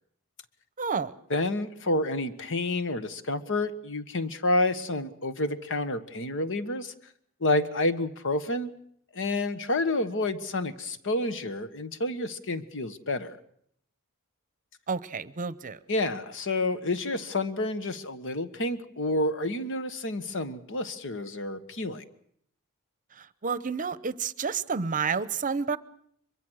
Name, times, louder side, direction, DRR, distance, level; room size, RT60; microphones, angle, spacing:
voice 1, 0.8-1.1 14.9-15.8 23.2-25.8, right 5 dB, 35° right, 16 dB, 0.8 m, -30 dB
voice 2, 1.3-6.9 7.4-8.7 9.1-13.4 15.9-22.0, left 2 dB, 60° left, 11 dB, 1.5 m, -29 dB
23.5 x 22.5 x 6.4 m, 0.67 s
head